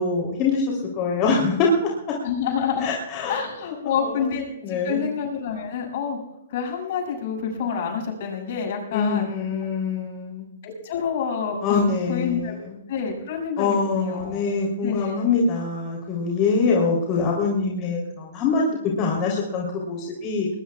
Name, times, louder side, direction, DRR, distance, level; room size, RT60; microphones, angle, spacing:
voice 1, 0.0-2.2 2.8-3.4 4.0-4.3 4.6-5.0 8.9-10.5 11.6-12.8 13.6-20.5, left 4 dB, 35° left, -2 dB, 3.5 m, -24 dB
voice 2, 2.2-2.9 3.3-6.2 6.5-9.3 10.6-12.5 12.9-14.5 14.8-15.2, left 6 dB, 55° left, 2 dB, 7.0 m, -28 dB
21.0 x 21.0 x 2.4 m, 0.88 s
hypercardioid pair, 130°, 0 cm